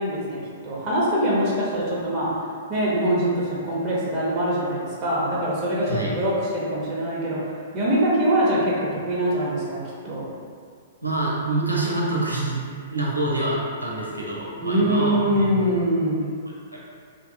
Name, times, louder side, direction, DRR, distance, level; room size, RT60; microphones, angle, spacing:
voice 1, 0.0-2.3 2.7-7.4 7.7-9.8 10.0-10.3 14.6-16.2, right 1 dB, 30° right, -7 dB, 0.7 m, -23 dB
voice 2, 5.8-6.1 11.0-12.6 12.9-15.8 16.7-16.8, right 2 dB, 85° right, -4 dB, 0.5 m, -26 dB
2.8 x 2.3 x 2.6 m, 2.1 s
figure-of-eight pair, 110°, 0 cm